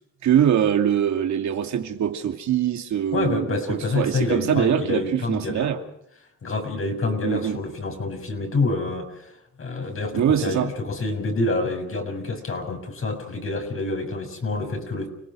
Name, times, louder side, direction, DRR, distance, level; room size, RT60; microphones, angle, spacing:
voice 1, 0.2-5.8 7.2-7.6 10.1-10.7, right 9 dB, 65° right, 2.5 m, -23 dB
voice 2, 3.1-5.8 6.4-9.3 9.6-15.1, left 3 dB, 45° left, 6.7 m, -27 dB
30.0 x 18.5 x 6.4 m
cardioid pair, 90°, 30 cm